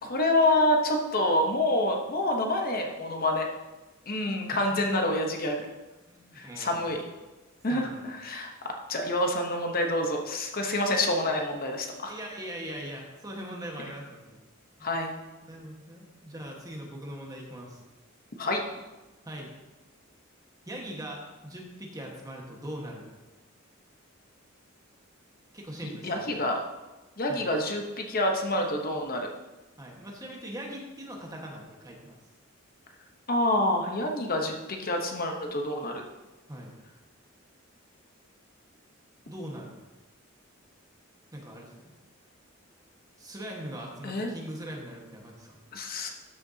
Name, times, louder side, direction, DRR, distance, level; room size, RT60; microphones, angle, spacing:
voice 1, 0.0-3.5 4.1-5.7 6.4-7.0 7.6-12.1 14.8-15.1 18.4-18.6 26.0-26.6 27.2-29.3 33.3-36.0 44.0-44.3 45.7-46.1, left 1 dB, 45° left, 3 dB, 0.9 m, -27 dB
voice 2, 4.5-5.0 6.1-6.9 7.7-8.1 12.1-14.4 14.8-14.9 15.4-17.8 19.2-19.5 20.7-23.1 25.5-26.4 27.3-27.5 29.8-32.2 36.5-36.7 39.2-39.7 41.3-41.9 43.2-45.7, equal, 20° right, -1 dB, 1.4 m, -41 dB
12.5 x 6.7 x 2.8 m, 1.1 s
head